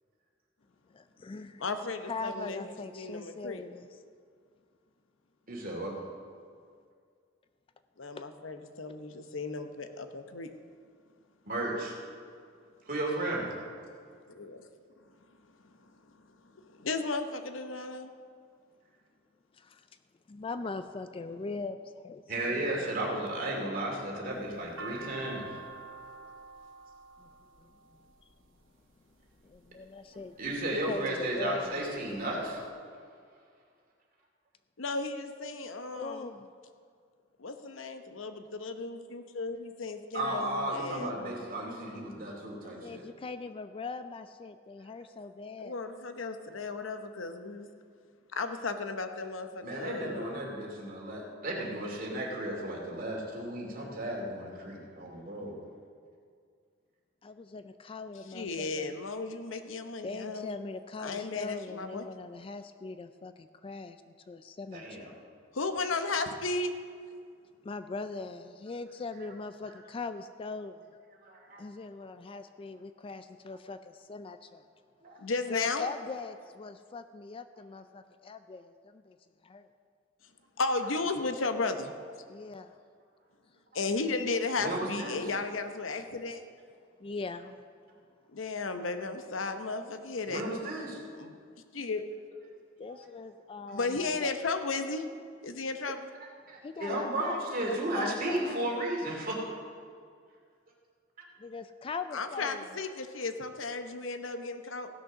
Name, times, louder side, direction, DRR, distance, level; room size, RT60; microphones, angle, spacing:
voice 1, 0.9-1.6 2.1-3.9 8.2-8.3 19.5-19.9 20.3-22.9 27.2-27.3 27.6-27.7 29.4-30.4 30.7-31.8 35.9-36.5 40.2-40.5 42.8-45.7 57.2-59.0 60.0-65.1 67.6-70.9 71.6-74.7 75.5-79.2 79.4-79.7 82.3-82.8 87.0-87.6 92.8-94.4 95.8-95.9 96.6-98.8 101.4-102.8, left 3 dB, 30° left, 10 dB, 0.3 m, -41 dB
voice 2, 1.6-3.6 8.0-10.5 14.3-14.6 16.8-18.1 34.8-36.3 37.4-41.1 45.6-47.7 48.3-50.4 58.3-60.5 61.0-62.0 65.5-66.7 75.2-75.9 80.6-81.9 83.7-86.4 88.3-90.4 91.2-91.4 91.7-92.0 93.7-95.1 95.4-96.1 102.1-104.9, left 3 dB, 85° left, 8 dB, 0.9 m, -34 dB
voice 3, 5.5-5.9 11.5-11.9 12.9-13.4 22.3-25.6 30.4-32.6 40.1-43.0 49.6-55.6 64.7-65.1 71.2-71.6 75.0-75.2 84.6-85.3 90.2-91.0 92.9-93.0 96.5-99.4, right 1 dB, 50° right, -1 dB, 2.6 m, -34 dB
sound 1, 24.3-28.6 29.4-29.9 30.5-31.1 31.5-31.6 31.7-32.6, right 4 dB, 80° right, 0.8 m, -47 dB
16.0 x 6.5 x 6.1 m, 2.2 s
head